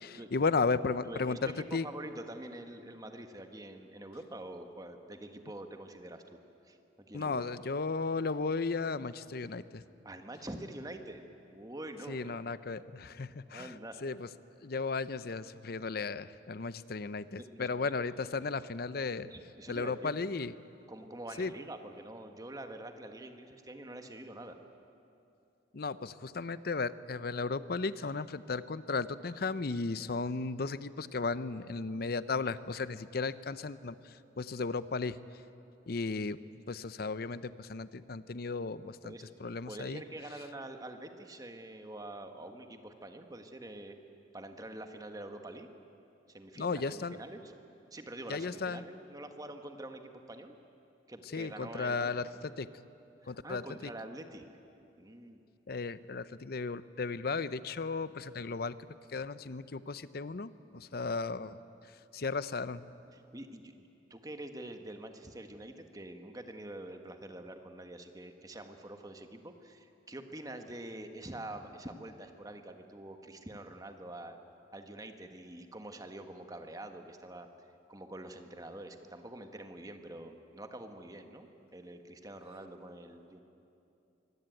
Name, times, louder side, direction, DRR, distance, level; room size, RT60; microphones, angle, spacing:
voice 1, 0.0-1.8 7.1-9.8 12.1-13.7 14.0-14.3 14.6-19.3 19.7-20.5 21.4-21.5 25.7-33.9 34.4-35.2 35.9-36.4 36.7-39.1 39.4-40.0 46.6-47.2 48.3-48.8 51.3-52.3 52.6-52.7 53.3-53.6 55.7-58.8 59.1-61.6 62.1-62.8, left 4 dB, 55° left, 15 dB, 0.7 m, -35 dB
voice 2, 1.1-6.4 6.6-7.4 10.0-12.4 13.3-14.0 17.3-17.9 19.2-20.1 20.9-24.6 39.0-39.3 39.7-44.0 44.3-45.7 46.3-47.5 47.9-50.5 51.1-52.2 53.2-54.5 55.0-55.4 63.1-74.4 74.7-83.4, right 1 dB, 20° right, 6 dB, 1.4 m, -46 dB
24.0 x 17.5 x 9.1 m, 2.7 s
head